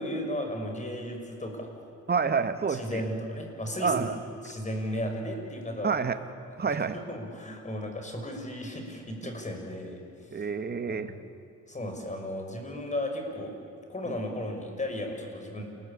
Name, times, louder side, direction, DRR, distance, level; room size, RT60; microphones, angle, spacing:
voice 1, 0.0-1.7 2.7-4.0 4.4-6.0 6.5-10.0 10.3-10.5 10.9-11.1 11.7-13.5 13.9-15.6, left 1 dB, 25° left, 3 dB, 6.2 m, -35 dB
voice 2, 2.1-3.0 3.8-4.2 5.8-6.2 6.6-7.0 10.3-11.1 14.1-14.2, right 5 dB, 35° right, 9 dB, 1.8 m, -28 dB
28.5 x 21.0 x 8.7 m, 2.6 s
cardioid pair, 90°, 30 cm